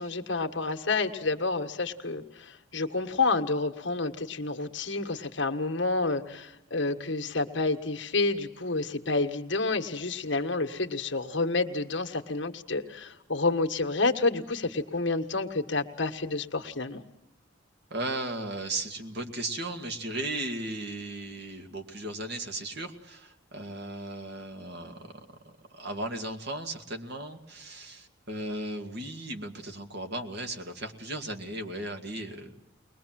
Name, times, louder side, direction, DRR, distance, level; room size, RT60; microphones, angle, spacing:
voice 1, 0.0-2.2 2.7-17.0, left 3 dB, 65° left, 6 dB, 1.7 m, -29 dB
voice 2, 17.9-32.7, right 2 dB, 60° right, 5 dB, 2.3 m, -36 dB
22.5 x 21.0 x 7.7 m, 0.87 s
head